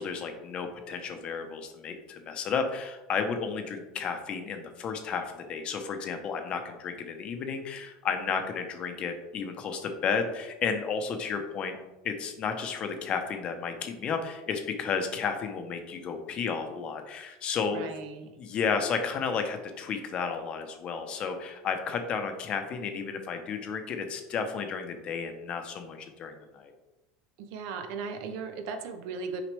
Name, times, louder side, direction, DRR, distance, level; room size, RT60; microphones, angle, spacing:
voice 1, 0.0-11.8 12.0-17.9 18.4-26.7, left 6 dB, 35° left, 6 dB, 0.9 m, -32 dB
voice 2, 17.7-18.3 27.4-29.4, right 5 dB, 60° right, 6 dB, 0.8 m, -37 dB
6.1 x 4.9 x 3.4 m, 1.0 s
supercardioid pair, 130°, 3 cm